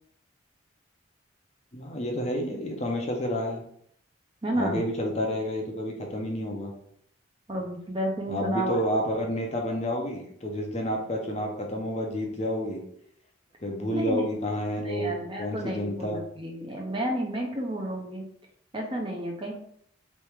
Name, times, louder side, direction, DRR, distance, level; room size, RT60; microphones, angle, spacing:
voice 1, 1.7-3.6 4.5-6.7 8.3-12.8 13.6-16.2, equal, 35° left, 1 dB, 0.6 m, -30 dB
voice 2, 4.4-4.8 7.5-8.8 13.9-14.3 14.8-18.2 18.7-19.5, right 1 dB, 25° right, 0 dB, 0.6 m, -31 dB
3.3 x 3.1 x 3.4 m, 0.67 s
head